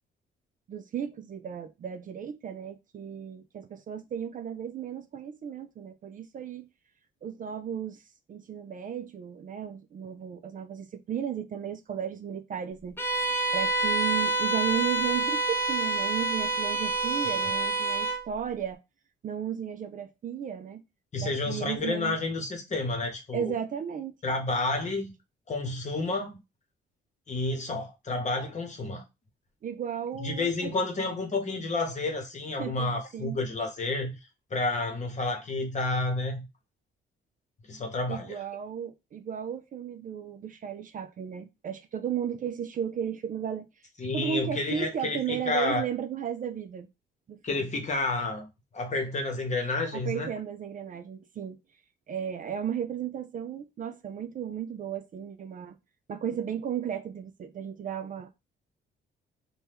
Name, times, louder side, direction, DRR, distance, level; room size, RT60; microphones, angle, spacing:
voice 1, 0.7-6.7 7.2-8.0 8.3-12.9 13.5-18.8 19.2-20.8 21.2-22.2 23.3-24.1 29.6-30.7 32.6-33.4 38.1-43.9 44.1-46.9 47.3-47.7 49.9-51.6 52.1-55.8 56.1-58.4, right 8 dB, 45° right, 0.4 m, -34 dB
Bowed string instrument, 13.0-18.3, right 2 dB, 10° left, 0.6 m, -27 dB
voice 2, 21.1-23.5 24.2-25.1 25.5-26.4 27.3-29.0 30.2-34.1 34.5-36.5 37.7-38.4 44.0-45.8 47.4-48.5 48.7-50.3, left 2 dB, 35° left, 1.0 m, -30 dB
2.7 x 2.2 x 3.3 m
cardioid pair, 90°, 20 cm